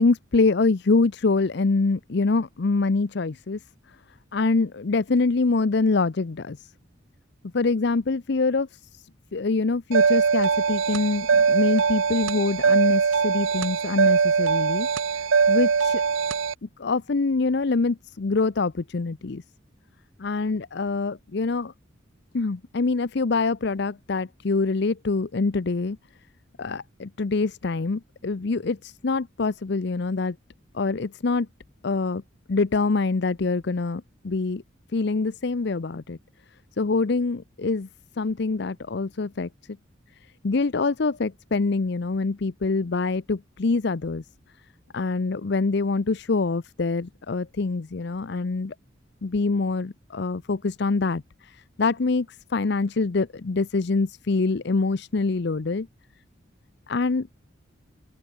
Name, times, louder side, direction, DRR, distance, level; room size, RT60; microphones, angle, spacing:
voice 1, 0.0-3.6 4.3-6.7 7.5-9.0 9.3-14.9 15.5-16.0 16.6-19.4 20.2-21.7 22.3-26.0 26.6-30.4 30.7-31.5 31.8-32.2 32.5-34.6 34.9-36.2 36.8-37.9 38.2-39.5 40.4-44.2 44.9-48.7 49.2-55.9 56.9-57.3, left 3 dB, 55° left, 0.6 m, -25 dB
sound 1, 9.9-16.5, right 5 dB, 80° right, 0.7 m, -21 dB
open air
head